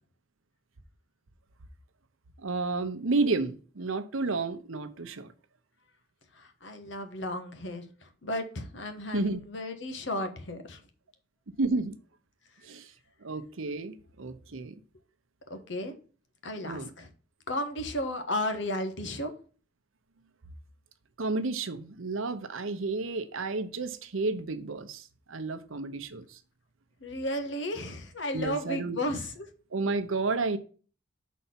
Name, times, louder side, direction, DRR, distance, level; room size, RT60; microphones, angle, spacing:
voice 1, 2.4-5.3 9.1-9.4 11.6-12.0 12.6-12.9 13.2-14.8 16.7-16.9 21.2-26.4 28.3-29.0 29.7-30.6, right 3 dB, 80° right, 0.8 m, -31 dB
voice 2, 6.3-10.8 15.5-15.9 16.4-17.1 17.5-19.3 27.0-29.4, left 1 dB, 60° left, 1.2 m, -34 dB
5.6 x 4.2 x 5.8 m
head